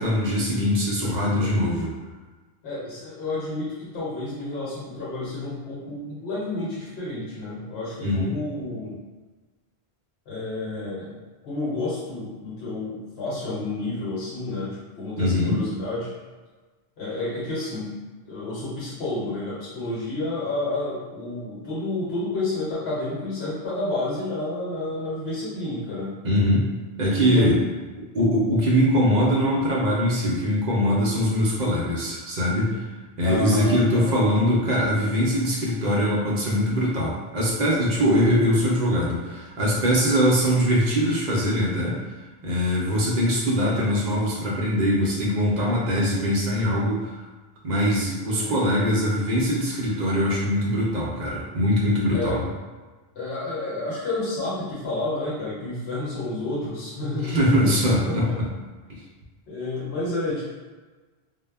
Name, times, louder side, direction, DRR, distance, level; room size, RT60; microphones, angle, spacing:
voice 1, 0.0-1.9 8.0-8.4 15.2-15.6 26.2-26.6 27.0-27.6 28.1-32.8 33.2-42.0 42.4-47.2 47.6-52.4 57.2-58.4 58.9-59.0, equal, 55° right, -4 dB, 0.6 m, -22 dB
voice 2, 1.0-1.6 2.6-9.0 10.3-11.2 11.4-16.1 17.0-17.9 18.3-26.2 27.2-27.5 33.2-34.1 48.3-48.6 52.1-52.4 53.1-57.7 58.0-58.4 59.5-60.4, left 2 dB, 70° left, -7 dB, 1.0 m, -30 dB
2.1 x 2.0 x 3.3 m, 1.3 s
omnidirectional pair, 1.1 m